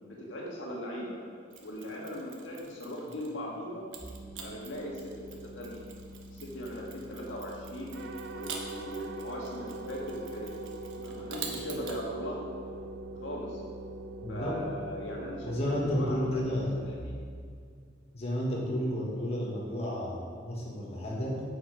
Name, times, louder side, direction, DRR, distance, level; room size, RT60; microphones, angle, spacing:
voice 1, 0.0-1.2 1.6-3.9 4.4-5.1 5.6-5.8 6.3-8.0 8.3-10.5 11.0-12.4 13.2-13.6 14.3-16.6 16.9-17.1, equal, 70° left, -3 dB, 1.8 m, -39 dB
Mechanisms, 1.5-3.4 3.9-12.0, right 5 dB, 85° right, 1.2 m, -46 dB
sound 1, 4.0-17.0, equal, 10° right, 0.4 m, -47 dB
sound 2, 7.9-17.2, right 3 dB, 65° right, 0.6 m, -44 dB
voice 2, 14.2-14.6 15.4-16.8 18.1-21.4, equal, 35° left, -4 dB, 1.5 m, -32 dB
8.4 x 6.6 x 4.9 m, 2.1 s
head